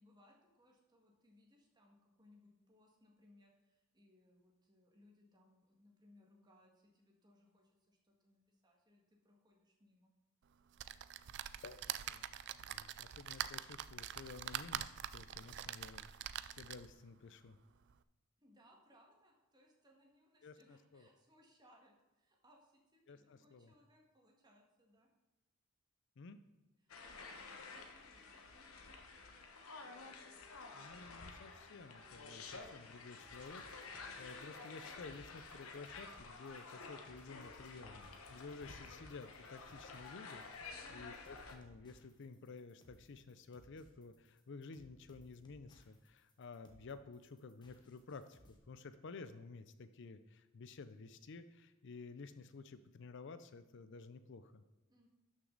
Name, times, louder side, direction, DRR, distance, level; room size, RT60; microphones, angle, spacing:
voice 1, 0.0-10.1 18.4-25.1 26.8-29.5 40.7-41.2 54.9-55.1, left 1 dB, 20° right, 0 dB, 1.8 m, -68 dB
sound 1, 10.8-17.0 17.5-17.6 17.9-18.0, right 11 dB, 55° right, 0.4 m, -45 dB
voice 2, 12.5-17.6 20.4-21.1 23.1-23.7 26.2-26.4 30.7-54.6, left 4 dB, 60° left, 12 dB, 0.5 m, -53 dB
sound 2, 26.9-41.6, left 4 dB, 85° left, 1.2 m, -52 dB
sound 3, 33.2-48.6, equal, 20° left, 1.2 m, -66 dB
12.0 x 6.3 x 3.9 m, 1.1 s
head